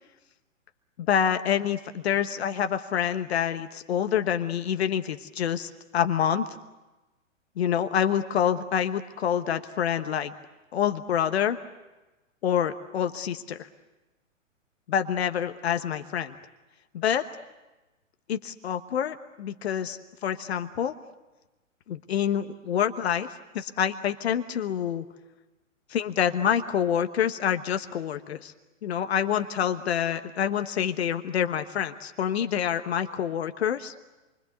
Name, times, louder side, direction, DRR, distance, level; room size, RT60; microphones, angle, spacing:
voice 1, 1.0-6.4 7.6-10.3 10.7-11.6 12.4-13.7 14.9-16.3 16.9-17.2 18.3-21.0 21.9-23.3 23.5-25.0 25.9-28.5 28.8-33.9, left 9 dB, 50° left, 9 dB, 1.2 m, -27 dB
28.0 x 24.5 x 8.2 m, 1.1 s
figure-of-eight pair, 120°, 39 cm